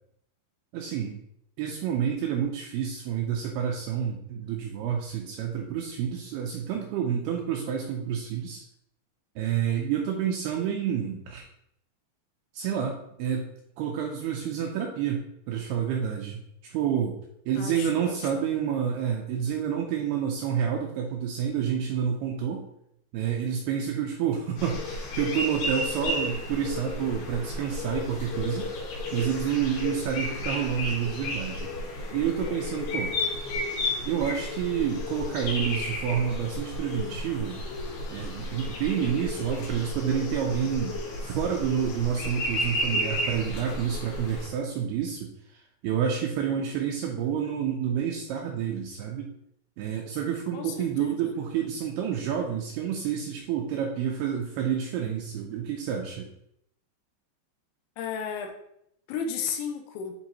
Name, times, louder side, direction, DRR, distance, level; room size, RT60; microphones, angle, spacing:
voice 1, 0.7-1.2 1.6-8.6 9.4-11.4 12.5-13.5 13.8-17.2 17.5-22.6 23.1-28.7 29.1-31.7 32.1-33.2 34.1-37.6 38.1-49.3 49.8-56.3, right 8 dB, 80° right, 1 dB, 2.3 m, -29 dB
voice 2, 17.6-18.1 50.5-51.3 58.0-58.5 59.1-60.1, left 6 dB, 85° left, 4 dB, 3.1 m, -34 dB
sound 1, 24.6-44.5, left 2 dB, 65° left, 2.9 m, -33 dB
10.0 x 3.9 x 2.9 m, 0.76 s
omnidirectional pair, 5.2 m